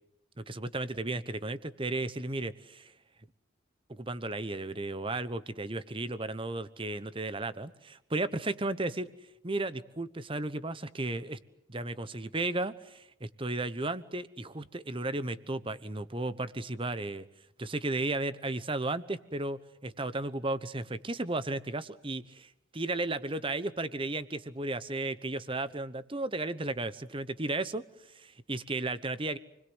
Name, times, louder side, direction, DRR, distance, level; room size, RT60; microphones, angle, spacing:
voice 1, 0.4-2.9 3.9-9.1 9.4-11.4 11.7-17.3 17.6-29.4, right 2 dB, 25° right, 14 dB, 1.0 m, -34 dB
29.0 x 21.5 x 8.1 m, 0.81 s
head